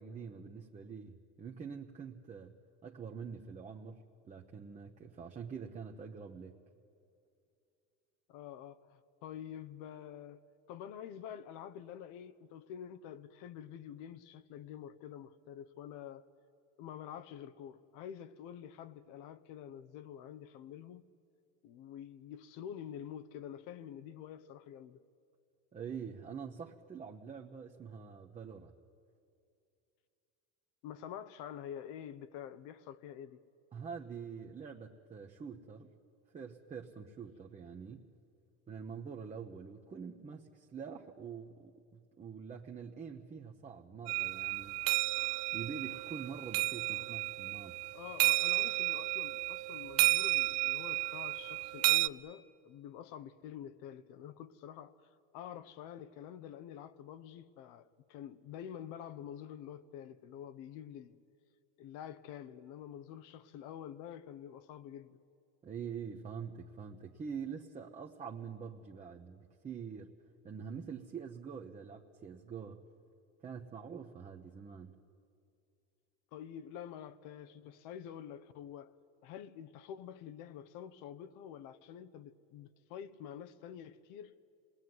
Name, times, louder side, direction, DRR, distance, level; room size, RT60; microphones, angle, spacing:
voice 1, 0.0-2.5 2.8-6.6 25.7-28.7 33.7-35.9 36.3-38.1 38.7-44.8 45.5-48.0 65.6-70.1 70.4-72.8 73.4-75.0, right 6 dB, 20° right, 1.1 m, -45 dB
voice 2, 8.3-10.4 10.7-16.3 16.8-21.1 21.6-25.0 30.8-33.4 47.9-61.2 61.8-65.2 76.3-78.9 79.2-84.3, left 9 dB, 60° left, 1.1 m, -48 dB
sound 1, 44.1-52.1, right 22 dB, 70° right, 0.5 m, -32 dB
27.0 x 19.5 x 9.5 m
supercardioid pair, 135°, 35 cm